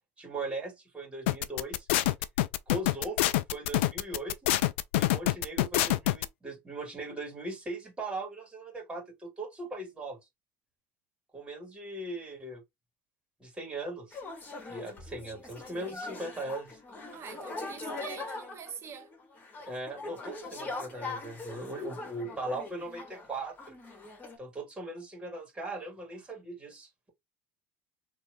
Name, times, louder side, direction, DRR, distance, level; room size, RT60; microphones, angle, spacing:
voice 1, 0.2-1.9 2.7-4.5 5.0-10.2 11.3-12.6 13.4-14.2 14.7-16.8 19.7-23.8 24.4-27.1, right 2 dB, 15° right, 2.6 m, -39 dB
sound 1, 1.3-6.2, left 16 dB, 85° left, 0.4 m, -26 dB
sound 2, 14.1-23.3 23.6-24.4, left 3 dB, 25° left, 2.8 m, -42 dB
voice 2, 17.1-19.1, right 7 dB, 45° right, 1.2 m, -44 dB
4.4 x 3.2 x 2.7 m
hypercardioid pair, 80°, 6 cm